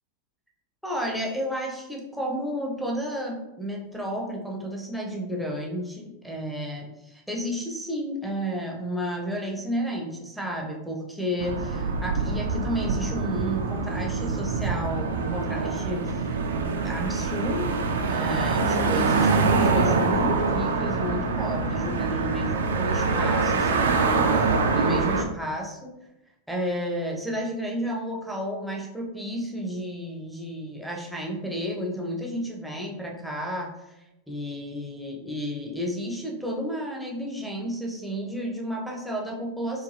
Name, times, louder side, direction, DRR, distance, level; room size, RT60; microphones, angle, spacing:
voice 1, 0.8-16.4 16.8-17.8 18.1-24.3 24.7-25.9 26.5-33.7 34.3-39.8, equal, ahead, -2 dB, 0.6 m, -32 dB
sound 1, 11.4-25.2, right 4 dB, 60° right, 0.3 m, -25 dB
2.6 x 2.3 x 3.1 m, 0.93 s
figure-of-eight pair, 90°, 0 cm